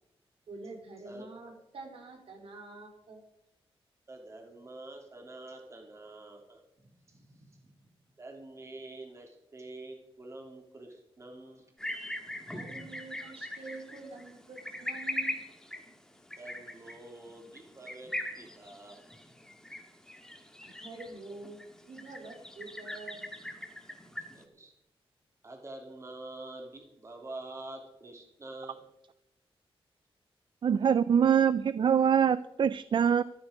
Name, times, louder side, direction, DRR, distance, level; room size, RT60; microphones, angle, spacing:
voice 1, 0.5-3.2 12.5-15.5 20.6-23.3, right 3 dB, 70° right, 2 dB, 4.4 m, -46 dB
voice 2, 4.1-7.7 8.2-11.7 16.4-18.1 18.4-19.1 23.9-24.0 24.3-24.7 25.4-28.8, right 2 dB, 30° right, 2 dB, 3.1 m, -47 dB
sound 1, 11.8-24.4, left 1 dB, 5° left, 1.8 m, -41 dB
voice 3, 30.6-33.2, right 8 dB, 55° right, 15 dB, 0.5 m, -24 dB
14.0 x 13.5 x 5.1 m, 0.83 s
wide cardioid pair, 150°, 10 cm